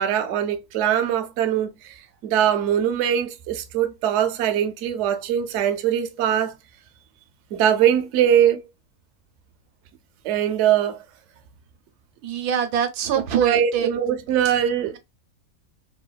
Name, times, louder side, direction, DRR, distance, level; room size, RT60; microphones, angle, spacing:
voice 1, 0.0-2.0 2.2-6.5 7.5-8.6 10.2-11.0 13.4-15.0, right 10 dB, 65° right, 0.8 m, -22 dB
voice 2, 12.2-13.9, right 8 dB, 85° right, 1.1 m, -23 dB
3.5 x 2.2 x 2.2 m
omnidirectional pair, 1.6 m